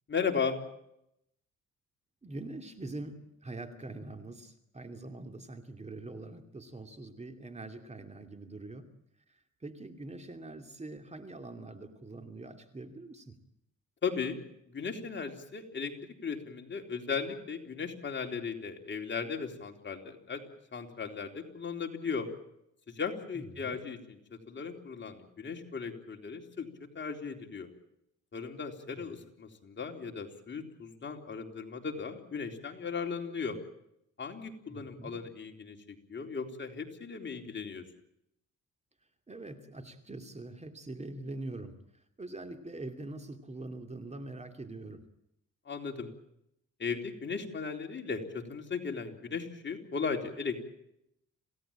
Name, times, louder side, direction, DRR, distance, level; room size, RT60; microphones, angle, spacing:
voice 1, 0.1-0.6 14.0-14.4 14.7-15.9 16.2-20.4 20.7-22.3 22.9-24.2 24.5-26.7 26.9-27.7 28.3-33.6 34.2-37.8 45.7-46.1 46.8-50.6, left 5 dB, 40° left, 3 dB, 3.9 m, -36 dB
voice 2, 2.2-8.9 9.3-13.4 23.3-23.8 28.9-29.0 34.7-35.2 39.3-41.8 42.2-45.0, right 2 dB, 20° right, 6 dB, 2.7 m, -44 dB
28.0 x 17.0 x 8.9 m, 0.81 s
cardioid pair, 90°, 30 cm